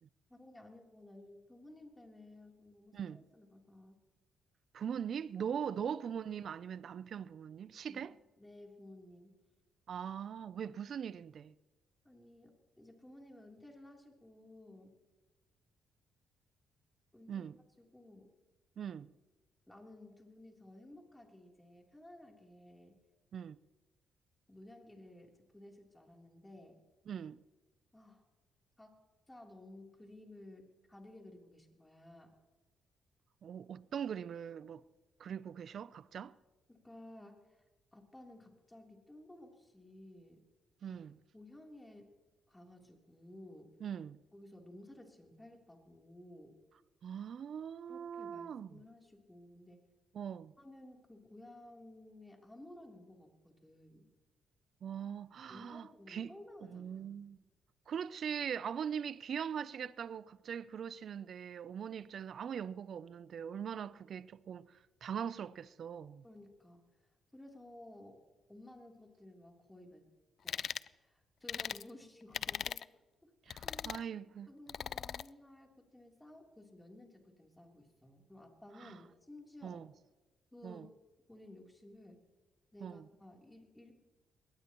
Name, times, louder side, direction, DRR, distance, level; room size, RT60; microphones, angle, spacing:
voice 1, 0.3-4.0 5.5-5.6 7.8-9.4 12.0-14.9 17.1-18.3 19.7-23.0 24.5-26.8 27.9-28.2 28.8-29.0 29.3-32.3 36.7-37.6 37.9-40.5 40.9-41.0 41.3-42.1 42.5-43.7 44.3-46.6 47.9-49.8 50.6-54.1 55.5-57.1 66.2-66.8 67.3-68.2 68.5-70.1 70.4-72.9 73.2-73.3 73.6-74.0 74.5-79.8 80.5-80.9 81.3-82.2 82.7-83.9, left 1 dB, 10° left, 3.4 m, -55 dB
voice 2, 4.7-8.1 9.9-11.5 17.3-17.6 18.8-19.1 23.3-23.6 27.1-27.4 33.4-34.8 35.2-36.4 40.8-41.2 43.8-44.2 47.0-48.8 50.1-50.5 54.8-56.3 56.7-57.4 57.9-66.2 73.5-74.5 78.8-79.0 79.6-79.9 80.6-80.9 82.8-83.1, right 8 dB, 55° right, 0.5 m, -41 dB
sound 1, 70.5-70.9 71.5-71.8 72.3-72.8 73.5-74.0 74.7-75.3, left 8 dB, 60° left, 0.4 m, -39 dB
21.5 x 18.5 x 3.1 m
cardioid pair, 90°, 0 cm